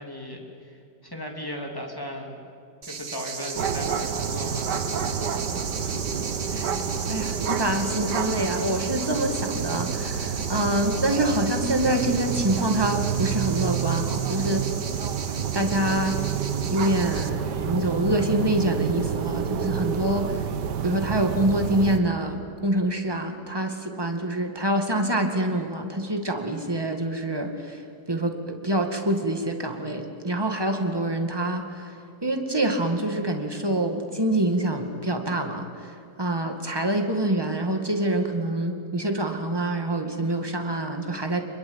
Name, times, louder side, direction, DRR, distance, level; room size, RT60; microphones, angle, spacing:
voice 1, 0.0-2.4 2.8-5.1, left 1 dB, 10° left, 1 dB, 3.1 m, -36 dB
sound 1, 2.8-17.3, right 5 dB, 45° right, 1.4 m, -36 dB
sound 2, 3.5-22.0, right 7 dB, 85° right, 1.8 m, -29 dB
voice 2, 7.1-14.7 15.5-16.2 16.7-20.5 20.8-41.4, right 1 dB, 15° right, 4 dB, 2.1 m, -26 dB
26.5 x 21.5 x 8.9 m, 2.5 s
omnidirectional pair, 1.8 m